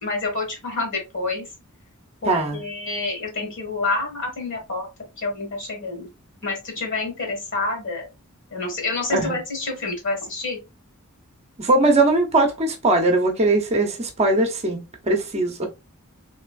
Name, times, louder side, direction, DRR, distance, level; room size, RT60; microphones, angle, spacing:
voice 1, 0.0-1.4 2.2-4.9 5.2-6.1 6.4-8.1 8.5-10.6, left 3 dB, 55° left, 1.5 m, -28 dB
voice 2, 2.3-2.6 9.1-9.4 11.6-15.7, right 2 dB, 30° right, 0.6 m, -20 dB
3.2 x 3.0 x 2.3 m
head